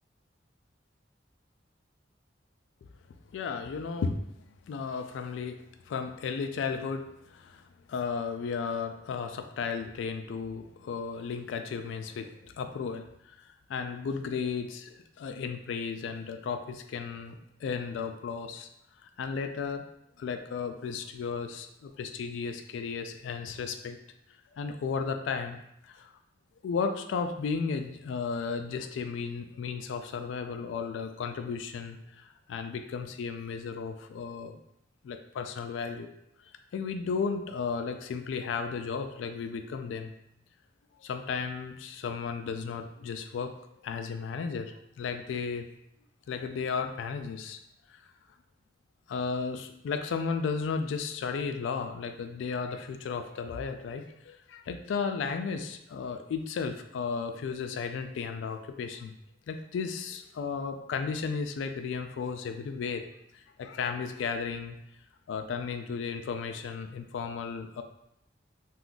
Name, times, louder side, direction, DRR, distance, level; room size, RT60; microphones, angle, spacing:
voice 1, 3.3-4.2 4.7-13.1 13.7-18.7 19.2-19.9 20.2-24.0 24.6-26.1 26.6-34.6 35.0-36.1 36.7-40.1 41.0-43.5 43.8-45.7 46.3-47.6 47.9-48.0 49.1-59.1 59.5-63.0 63.6-64.8 65.3-67.8, left 5 dB, 85° left, 7 dB, 0.3 m, -34 dB
2.5 x 2.3 x 3.7 m, 0.77 s
head